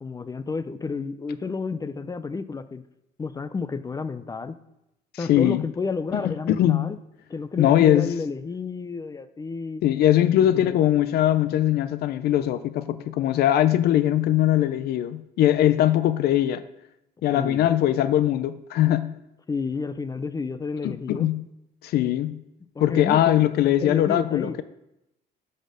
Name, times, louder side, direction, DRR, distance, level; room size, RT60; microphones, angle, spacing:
voice 1, 0.0-2.8 3.2-4.5 5.2-7.0 7.3-9.8 10.5-10.7 17.3-17.7 19.5-21.3 22.7-23.3 23.8-24.6, left 4 dB, 20° left, 0.5 m, -31 dB
voice 2, 5.3-5.6 6.2-7.0 7.6-8.1 9.8-16.6 17.2-19.2 20.8-21.4 21.8-22.4 22.8-24.6, left 12 dB, 70° left, 0.5 m, -21 dB
10.0 x 4.3 x 6.3 m
cardioid pair, 110°, 17 cm